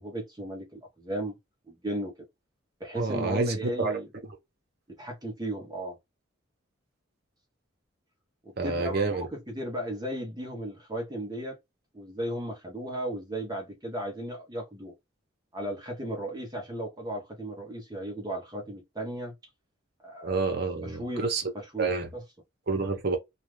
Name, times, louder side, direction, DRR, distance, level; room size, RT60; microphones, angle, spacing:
voice 1, 0.0-1.3 1.7-2.1 2.8-4.1 4.9-6.0 8.4-11.6 11.9-14.9 15.5-19.3 20.0-20.4 20.8-21.2 21.5-22.2, right 1 dB, 20° right, 0.7 m, -35 dB
voice 2, 3.0-3.9 8.6-9.3 20.2-21.5 21.8-22.1 22.7-23.2, right 3 dB, 50° right, 0.8 m, -28 dB
2.4 x 2.3 x 3.1 m
head